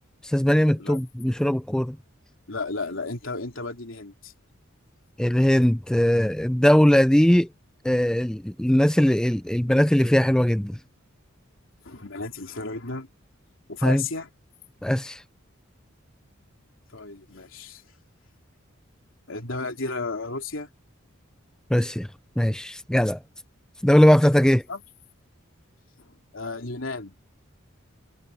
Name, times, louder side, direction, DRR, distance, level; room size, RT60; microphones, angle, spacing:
voice 1, 0.2-2.0 5.2-7.5 7.8-10.8 13.8-14.0 14.8-15.2 21.7-22.1 22.4-23.2 23.8-24.6, equal, 5° left, 0.3 m, -20 dB
voice 2, 2.5-4.3 11.8-13.1 13.7-14.3 16.9-17.8 19.3-20.7 24.7-24.8 26.0-27.1, left 3 dB, 70° left, 3.2 m, -33 dB
head